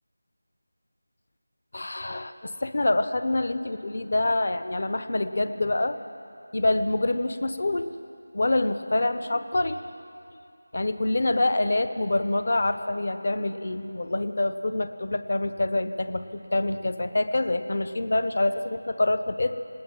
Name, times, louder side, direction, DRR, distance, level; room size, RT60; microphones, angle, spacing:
voice 1, 1.7-6.0 6.5-7.9 8.3-9.9 10.7-19.6, left 2 dB, 45° left, 11 dB, 1.1 m, -26 dB
20.5 x 18.0 x 9.1 m, 2.5 s
figure-of-eight pair, 175°, 0 cm